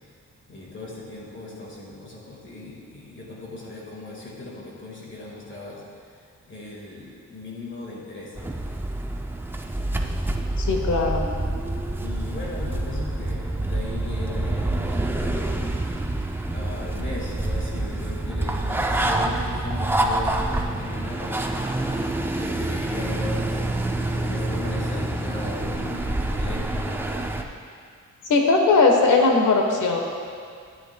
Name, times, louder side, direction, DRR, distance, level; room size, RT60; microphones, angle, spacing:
voice 1, 0.5-5.8 6.1-8.4 11.4-11.7 12.0-15.8 16.5-21.4 22.4-23.5 23.9-24.0 24.2-27.3, left 2 dB, 40° left, -4 dB, 1.8 m, -38 dB
sound 1, 8.4-27.4, right 1 dB, 10° right, 0.4 m, -27 dB
voice 2, 10.6-11.3 28.3-30.0, left 3 dB, 80° left, 1 dB, 1.2 m, -19 dB
12.0 x 9.8 x 2.3 m, 2.2 s
wide cardioid pair, 155°, 30 cm